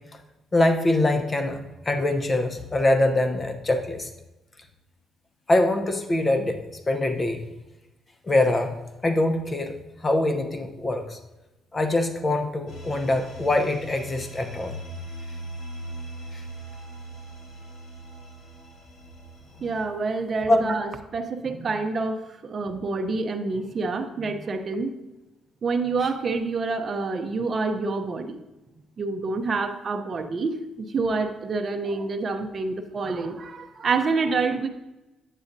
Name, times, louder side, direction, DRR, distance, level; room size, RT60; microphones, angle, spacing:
voice 1, 0.5-4.1 5.5-7.4 8.2-9.7 10.0-11.2 11.7-14.8 16.3-16.4 20.5-20.7, left 2 dB, 25° left, 6 dB, 0.8 m, -24 dB
sound 1, 12.7-19.8, right 1 dB, 60° left, 3.0 m, -40 dB
voice 2, 19.6-24.9 25.6-28.4 29.0-34.7, right 3 dB, 45° right, 5 dB, 0.6 m, -27 dB
8.3 x 8.2 x 2.6 m, 1.0 s
cardioid pair, 90°, 0 cm